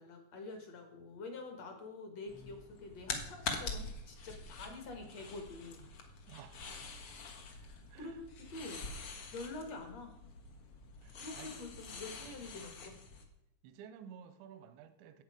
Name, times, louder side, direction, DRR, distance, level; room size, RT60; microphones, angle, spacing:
voice 1, 0.0-5.9 7.4-8.2 8.5-8.8 9.3-10.1 11.1-12.9, left 3 dB, 60° left, 5 dB, 1.8 m, -47 dB
sound 1, 2.3-13.2, left 4 dB, 80° left, 1.2 m, -45 dB
voice 2, 6.3-6.9 7.9-8.2 11.0-11.5 12.2-12.3 13.6-15.2, right 8 dB, 85° right, 11 dB, 2.9 m, -54 dB
13.0 x 8.8 x 5.0 m, 0.92 s
omnidirectional pair, 5.3 m